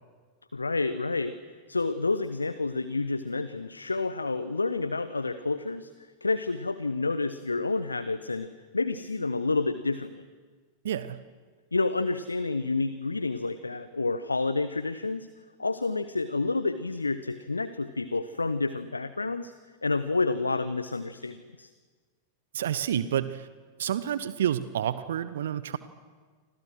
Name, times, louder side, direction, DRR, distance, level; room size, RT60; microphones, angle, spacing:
voice 1, 0.5-1.3 1.7-5.9 6.2-8.5 8.7-10.2 11.7-15.3 15.6-19.5 19.8-21.7, left 3 dB, 80° left, 14 dB, 0.9 m, -29 dB
voice 2, 10.8-11.2 22.5-23.5 23.8-25.8, right 10 dB, 60° right, 15 dB, 0.9 m, -29 dB
29.0 x 25.5 x 6.3 m, 1.5 s
figure-of-eight pair, 90°, 0 cm